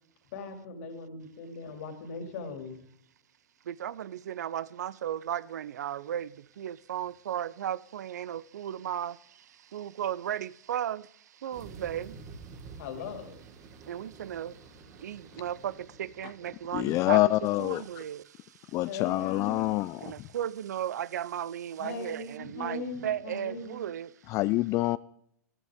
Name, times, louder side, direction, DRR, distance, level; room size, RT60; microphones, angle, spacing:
voice 1, 0.3-2.8 12.8-13.4 18.8-19.8 21.8-23.9, left 3 dB, 60° left, 2.6 m, -39 dB
voice 2, 3.7-12.4 13.9-17.2 17.6-18.8 20.0-24.1, right 10 dB, 75° right, 0.5 m, -35 dB
sound 1, 11.5-18.1, right 4 dB, 45° right, 4.2 m, -50 dB
voice 3, 16.7-18.0 18.7-20.3 24.3-25.0, left 18 dB, 35° left, 0.4 m, -26 dB
14.0 x 13.0 x 3.6 m
hypercardioid pair, 110°, 9 cm